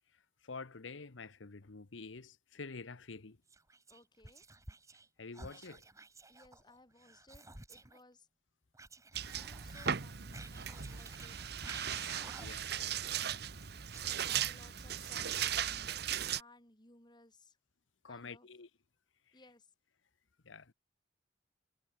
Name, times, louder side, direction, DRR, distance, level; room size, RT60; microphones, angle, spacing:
voice 1, 0.4-3.4 5.2-5.8 12.4-13.0 18.0-18.7 20.4-20.7, left 4 dB, 85° left, 1.1 m, -48 dB
Whispering, 3.5-5.1 5.3-8.0 8.7-12.7 13.0-14.8, right 2 dB, 15° right, 4.7 m, -53 dB
voice 2, 3.9-4.4 6.3-8.3 9.3-11.4 12.2-12.6 14.1-17.6 18.1-18.5 19.3-19.7, left 2 dB, 25° left, 4.1 m, -61 dB
sound 1, 9.1-16.4, right 9 dB, 60° right, 1.0 m, -37 dB
head